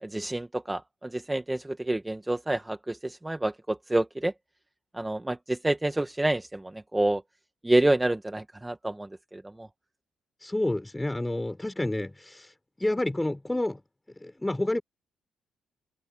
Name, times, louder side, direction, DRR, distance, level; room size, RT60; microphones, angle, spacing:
voice 1, 0.0-4.3 4.9-7.2 7.6-9.7, right 1 dB, 10° right, 1.2 m, -28 dB
voice 2, 10.4-12.5 12.8-13.8 14.2-14.8, left 1 dB, 10° left, 4.0 m, -29 dB
cardioid pair, 90°, 0 cm